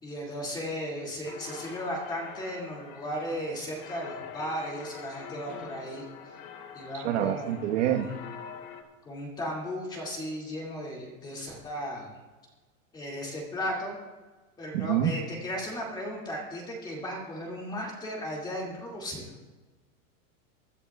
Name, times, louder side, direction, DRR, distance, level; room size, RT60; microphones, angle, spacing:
voice 1, 0.0-6.0 6.7-8.1 9.0-12.1 12.9-14.0 14.6-19.3, equal, 10° left, -3 dB, 2.3 m, -36 dB
sound 1, 1.2-8.8, left 7 dB, 40° left, 1.2 m, -45 dB
voice 2, 6.9-8.1 14.7-15.1, right 11 dB, 55° right, 3 dB, 1.3 m, -26 dB
24.5 x 11.5 x 2.4 m, 1.3 s
supercardioid pair, 180°, 42 cm